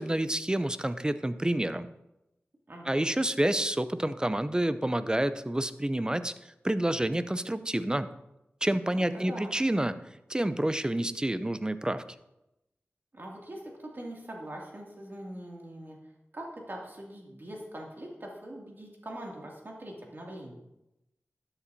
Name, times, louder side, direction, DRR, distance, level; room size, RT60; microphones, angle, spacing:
voice 1, 0.0-1.9 2.9-6.3 6.6-8.1 8.6-10.0 10.3-12.0, right 1 dB, 15° right, 12 dB, 0.6 m, -28 dB
voice 2, 2.7-3.0 8.8-9.5 13.1-16.0 16.3-20.5, right 1 dB, 50° right, -2 dB, 2.5 m, -42 dB
12.5 x 8.9 x 2.8 m, 0.90 s
cardioid pair, 50°, 5 cm